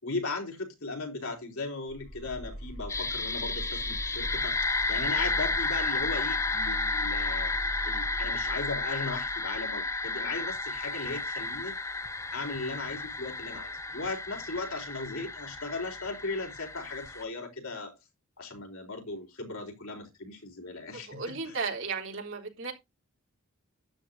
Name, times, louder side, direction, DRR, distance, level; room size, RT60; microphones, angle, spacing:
voice 1, 0.0-7.5 7.8-11.7 12.3-17.9 18.4-21.6, left 3 dB, 90° left, 4.3 m, -37 dB
sound 1, 1.9-10.8, equal, 65° left, 5.7 m, -41 dB
sound 2, 2.9-17.2, left 3 dB, 15° left, 0.5 m, -32 dB
voice 2, 20.9-22.7, right 4 dB, 60° right, 3.7 m, -35 dB
12.5 x 10.0 x 2.8 m
head